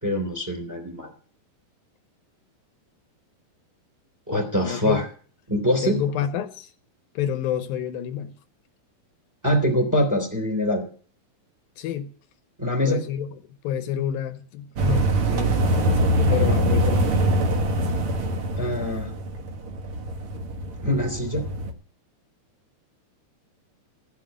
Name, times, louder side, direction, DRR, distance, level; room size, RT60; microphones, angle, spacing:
voice 1, 0.0-1.1 4.3-5.1 5.5-6.0 9.4-10.8 12.6-13.0 18.6-19.1 20.8-21.5, equal, 5° right, 2.6 m, -24 dB
voice 2, 4.6-5.0 5.8-6.7 7.2-8.3 11.8-12.1 12.8-13.4 13.6-16.0 16.3-17.2, left 9 dB, 80° left, 2.7 m, -29 dB
sound 1, 14.8-21.7, right 1 dB, 50° right, 1.8 m, -23 dB
14.5 x 7.5 x 9.2 m
omnidirectional pair, 4.3 m